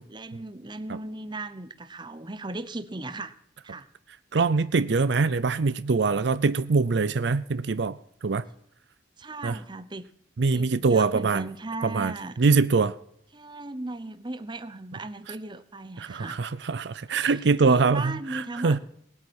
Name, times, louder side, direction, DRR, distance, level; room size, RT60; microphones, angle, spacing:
voice 1, 0.1-3.4 3.6-3.9 9.2-10.1 10.5-12.4 13.3-16.4 17.1-18.8, right 2 dB, 25° right, 0.8 m, -37 dB
voice 2, 4.3-8.4 9.4-9.6 10.4-11.5 11.8-13.0 16.0-18.8, right 4 dB, 65° right, 0.5 m, -23 dB
19.0 x 8.5 x 6.4 m
head